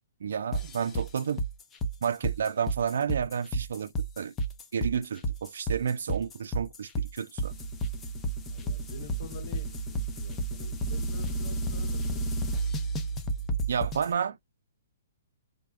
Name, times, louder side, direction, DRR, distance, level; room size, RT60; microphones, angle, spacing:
voice 1, 0.2-1.4 2.0-4.3 4.7-7.5 13.7-14.4, right 7 dB, 70° right, 0.3 m, -31 dB
sound 1, 0.5-14.1, right 2 dB, 20° left, 0.5 m, -31 dB
voice 2, 8.5-12.5, left 6 dB, 65° left, 1.1 m, -48 dB
2.6 x 2.1 x 2.2 m
hypercardioid pair, 145°, 0 cm